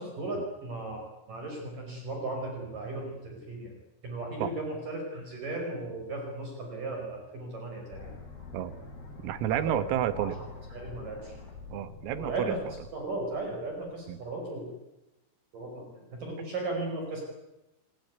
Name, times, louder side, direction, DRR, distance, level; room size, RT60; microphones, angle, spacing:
voice 1, 0.0-3.7 4.0-8.1 9.5-9.6 10.1-10.3 10.7-11.4 12.2-12.6 12.9-14.7 15.5-17.2, right 2 dB, 40° right, 2 dB, 6.2 m, -36 dB
sound 1, 7.9-13.9, left 4 dB, 50° left, 7.2 m, -46 dB
voice 2, 9.2-10.4 11.7-12.6 14.1-14.2, right 11 dB, 90° right, 13 dB, 4.1 m, -30 dB
29.5 x 18.0 x 9.5 m, 0.98 s
omnidirectional pair, 5.8 m